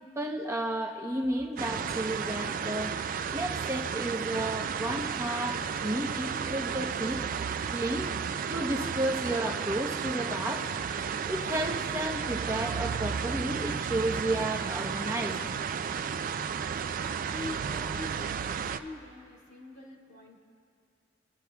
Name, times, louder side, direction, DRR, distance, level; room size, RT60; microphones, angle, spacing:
voice 1, 0.2-3.0 3.3-7.2 7.7-8.1 8.5-10.7 11.3-15.5, right 1 dB, 15° right, 1 dB, 0.8 m, -32 dB
sound 1, 1.6-18.8, right 6 dB, 50° right, 0.3 m, -33 dB
voice 2, 17.2-20.4, left 2 dB, 70° left, -3 dB, 2.1 m, -44 dB
29.0 x 10.5 x 2.3 m, 2.3 s
head